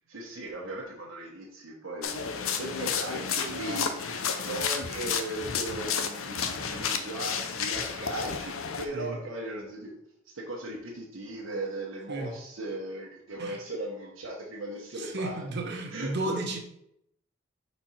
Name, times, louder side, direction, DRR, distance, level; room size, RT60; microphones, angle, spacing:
voice 1, 0.1-2.2 2.6-3.9 4.5-9.9 10.3-15.4 15.9-16.4, right 1 dB, 75° right, -4 dB, 1.3 m, -37 dB
sound 1, 2.0-8.8, left 6 dB, 90° left, 0.7 m, -32 dB
voice 2, 14.9-16.6, right 2 dB, 55° right, 1 dB, 1.2 m, -33 dB
4.4 x 4.1 x 5.7 m, 0.76 s
head